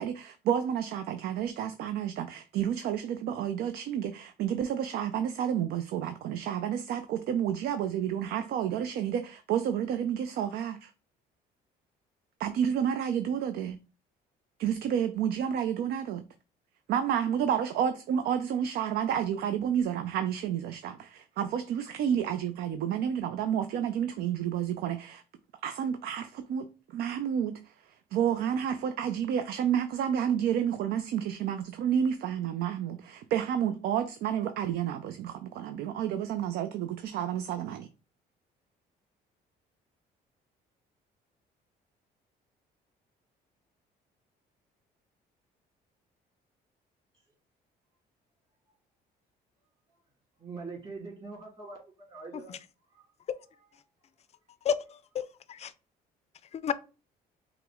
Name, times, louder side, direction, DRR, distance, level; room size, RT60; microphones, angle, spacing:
voice 1, 0.0-10.9 12.4-13.8 14.6-16.2 16.9-25.2 25.6-37.9, right 9 dB, 70° right, 0.4 m, -30 dB
voice 2, 50.4-52.6, right 3 dB, 35° right, 2.2 m, -43 dB
voice 3, 54.6-55.7 56.5-56.7, left 7 dB, 40° left, 0.4 m, -31 dB
5.7 x 2.1 x 3.6 m
cardioid pair, 110°, 17 cm